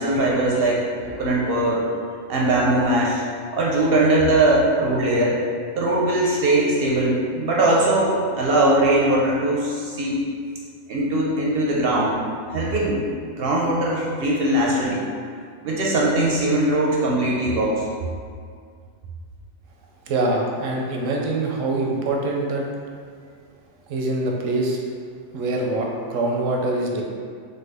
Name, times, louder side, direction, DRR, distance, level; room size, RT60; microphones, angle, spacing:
voice 1, 0.0-1.8 2.3-3.2 3.5-5.4 5.7-10.2 10.9-12.2 12.5-13.0 13.3-15.0 15.6-17.9, right 1 dB, 60° right, -4 dB, 0.6 m, -20 dB
voice 2, 20.1-22.6 23.9-24.8 25.3-27.0, right 2 dB, 85° right, -1 dB, 0.9 m, -24 dB
3.6 x 2.1 x 3.3 m, 2.1 s
omnidirectional pair, 1.3 m